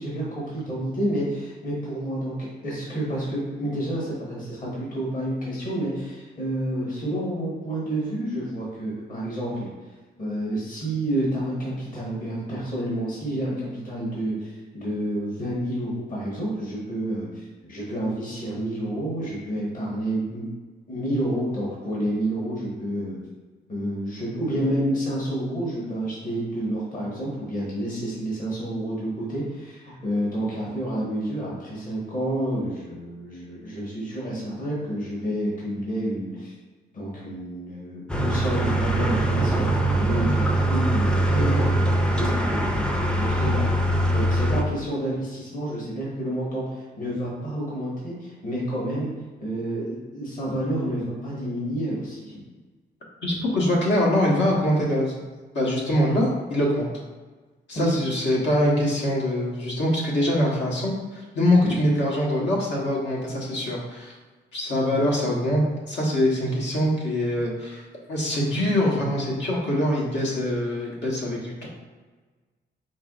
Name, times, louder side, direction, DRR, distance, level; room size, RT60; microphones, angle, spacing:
voice 1, 0.0-2.3 2.6-9.7 10.2-20.4 20.9-23.2 23.7-36.5 36.9-43.7 44.1-49.1 49.4-52.4 57.7-57.9 61.6-61.7, right 1 dB, 45° left, -6 dB, 1.4 m, -29 dB
sound 1, 38.1-44.6, right 1 dB, 5° left, 0.4 m, -22 dB
voice 2, 53.2-55.3 55.5-56.9 57.7-64.1 64.5-71.7, left 1 dB, 80° left, -4 dB, 1.2 m, -24 dB
4.7 x 3.9 x 2.4 m, 1.3 s
cardioid pair, 100°, 18 cm